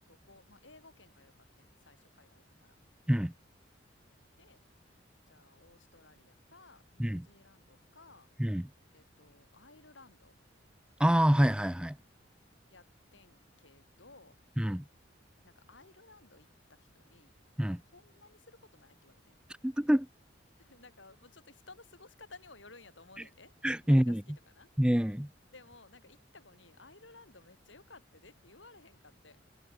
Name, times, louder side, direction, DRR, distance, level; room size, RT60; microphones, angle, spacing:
voice 1, 0.1-2.8 4.4-4.6 5.3-8.3 8.9-10.4 12.7-14.4 15.4-17.3 17.8-19.4 20.6-23.5 23.8-24.7 25.5-29.4, left 3 dB, 70° left, 6.5 m, -57 dB
voice 2, 11.0-12.0 14.6-14.8 17.6-17.8 19.6-20.1 23.6-24.2 24.8-25.3, equal, 5° right, 0.6 m, -26 dB
head